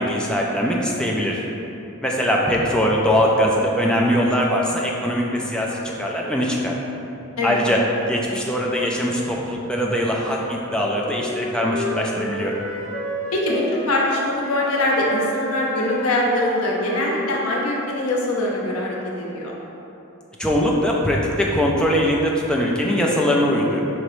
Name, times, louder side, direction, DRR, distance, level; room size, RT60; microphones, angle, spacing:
voice 1, 0.0-1.4 2.0-6.8 7.4-7.8 8.1-12.5 20.4-23.8, equal, 5° left, -3 dB, 0.4 m, -21 dB
Wind instrument woodwind instrument, 11.0-14.1 14.4-18.3, equal, 35° left, 1.5 m, -31 dB
voice 2, 13.3-19.5, left 1 dB, 75° left, -3 dB, 0.8 m, -23 dB
5.2 x 2.9 x 3.1 m, 2.9 s
head